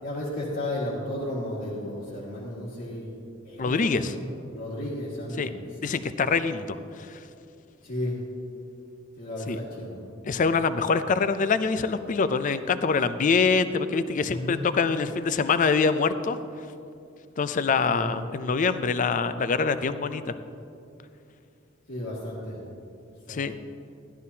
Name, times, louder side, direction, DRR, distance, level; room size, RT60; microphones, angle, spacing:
voice 1, 0.0-3.1 3.4-5.7 7.8-8.2 9.2-10.0 14.2-14.7 17.9-18.2 21.9-22.6 23.3-23.4, left 1 dB, 65° left, -9 dB, 1.8 m, -34 dB
voice 2, 3.6-4.1 5.4-5.5 5.8-6.8 9.5-9.6 10.3-16.4 17.4-20.3 23.3-23.6, left 5 dB, 40° left, 12 dB, 0.4 m, -24 dB
13.0 x 11.5 x 2.8 m, 2.6 s
head